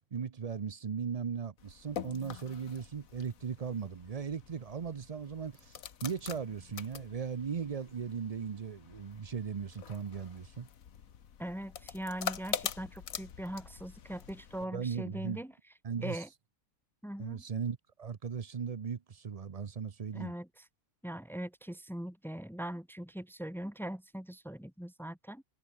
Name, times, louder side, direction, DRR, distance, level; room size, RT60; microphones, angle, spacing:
voice 1, 0.1-10.7 14.6-15.4 15.8-16.2 17.2-20.3, right 6 dB, 50° right, 0.4 m, -38 dB
sound 1, 1.6-14.7, left 8 dB, 65° left, 1.6 m, -44 dB
voice 2, 11.4-15.5 16.0-16.3 17.0-17.4 20.1-20.7 21.0-25.4, right 1 dB, ahead, 2.9 m, -41 dB
omnidirectional pair, 1.6 m